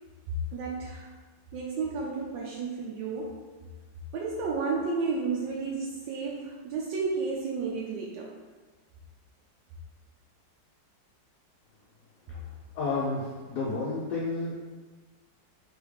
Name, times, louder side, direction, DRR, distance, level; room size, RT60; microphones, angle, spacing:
voice 1, 0.5-1.1 1.5-3.4 4.1-8.3, right 4 dB, 80° right, -3 dB, 1.3 m, -32 dB
voice 2, 12.7-14.5, left 3 dB, 70° left, -5 dB, 1.1 m, -30 dB
4.0 x 3.5 x 3.3 m, 1.3 s
omnidirectional pair, 2.0 m